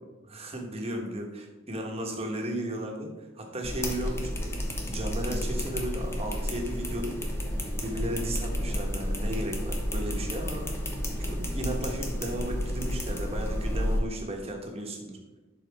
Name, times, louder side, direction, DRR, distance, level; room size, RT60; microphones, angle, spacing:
voice 1, 0.3-7.1 7.8-10.7 11.1-15.2, right 1 dB, 30° right, 1 dB, 1.3 m, -35 dB
sound 1, 3.6-14.0, equal, 15° left, 1.0 m, -31 dB
11.0 x 4.5 x 3.6 m, 1.1 s
head